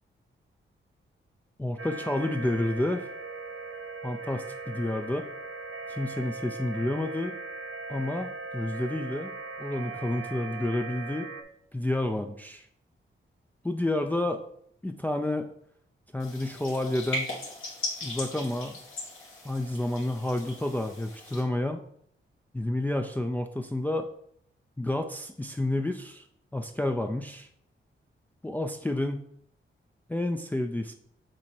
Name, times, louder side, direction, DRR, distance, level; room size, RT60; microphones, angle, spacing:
voice 1, 1.6-3.1 4.0-5.3 5.9-7.3 7.9-9.3 9.6-11.3 11.7-12.7 13.6-14.4 14.8-15.5 16.1-17.3 18.0-18.8 19.4-21.8 22.5-24.1 24.8-26.3 26.5-27.5 28.4-29.3 30.1-30.9, left 1 dB, 10° left, 5 dB, 0.4 m, -30 dB
sound 1, 1.8-11.4, right 3 dB, 80° right, 0.7 m, -39 dB
sound 2, 16.2-21.4, left 2 dB, 80° left, 2.2 m, -38 dB
7.5 x 2.9 x 4.3 m, 0.68 s
cardioid pair, 85°, 21 cm